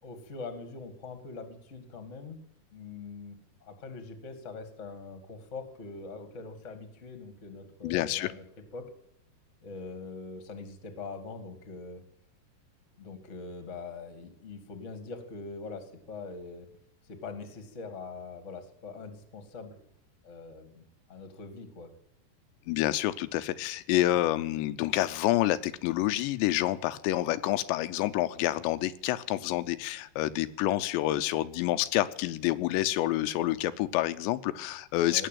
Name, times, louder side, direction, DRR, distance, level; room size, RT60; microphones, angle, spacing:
voice 1, 0.0-2.4 2.7-8.4 8.7-8.9 9.6-12.0 13.0-16.7 17.1-19.8 20.2-21.9 35.1-35.3, left 4 dB, 25° left, 8 dB, 1.5 m, -43 dB
voice 2, 7.8-8.3 22.7-35.3, left 15 dB, 85° left, 11 dB, 3.0 m, -28 dB
18.0 x 7.7 x 9.2 m, 0.71 s
omnidirectional pair, 5.0 m